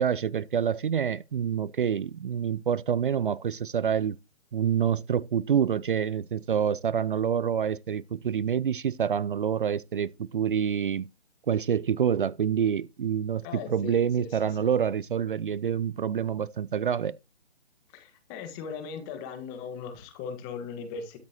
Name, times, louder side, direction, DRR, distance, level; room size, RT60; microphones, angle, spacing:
voice 1, 0.0-4.2 4.5-11.1 11.5-17.1, right 8 dB, 50° right, 0.5 m, -27 dB
voice 2, 13.4-14.3 17.9-21.2, left 6 dB, 20° left, 1.6 m, -38 dB
12.5 x 10.5 x 3.0 m
figure-of-eight pair, 140°, 32 cm